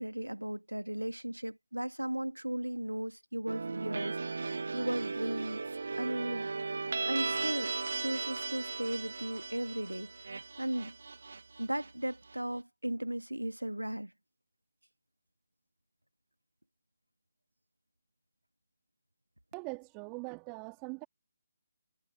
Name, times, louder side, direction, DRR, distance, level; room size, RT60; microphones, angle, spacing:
voice 1, 0.0-5.6 6.0-6.5 7.1-10.9 11.6-14.1, right 1 dB, 85° right, 1.6 m, -36 dB
sound 1, 3.5-12.3, right 4 dB, 60° right, 1.1 m, -37 dB
voice 2, 19.5-21.0, right 38 dB, 20° right, 2.9 m, -42 dB
figure-of-eight pair, 145°, 0 cm